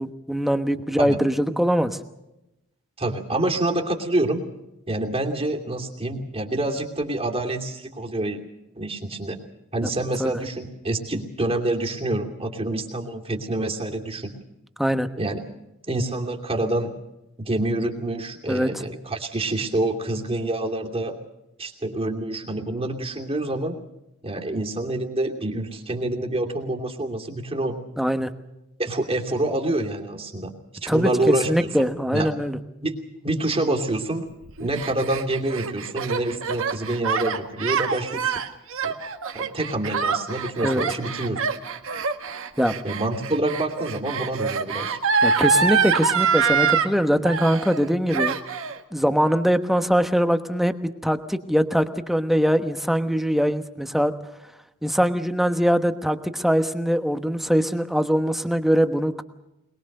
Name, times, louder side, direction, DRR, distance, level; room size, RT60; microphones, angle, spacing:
voice 1, 0.0-2.0 10.2-10.3 14.8-15.1 18.5-18.7 28.0-28.3 30.9-32.6 40.6-40.8 42.6-42.7 45.2-48.4 48.9-50.7 51.0-54.1 54.8-59.2, equal, ahead, 8 dB, 1.1 m, -22 dB
voice 2, 3.0-4.4 4.9-8.4 8.8-9.4 9.7-14.3 15.2-15.4 15.9-17.0 17.4-21.2 21.6-23.7 24.2-27.8 28.8-30.5 30.8-31.7 32.1-32.3 32.8-32.9 33.2-34.2 34.6-38.4 38.8-38.9 39.3-41.4 42.8-45.0, right 1 dB, 25° right, 2 dB, 2.8 m, -27 dB
Gasp, 34.4-46.9 47.2-47.8 48.1-48.8, right 5 dB, 65° right, 1.7 m, -25 dB
22.0 x 22.0 x 6.6 m, 0.89 s
head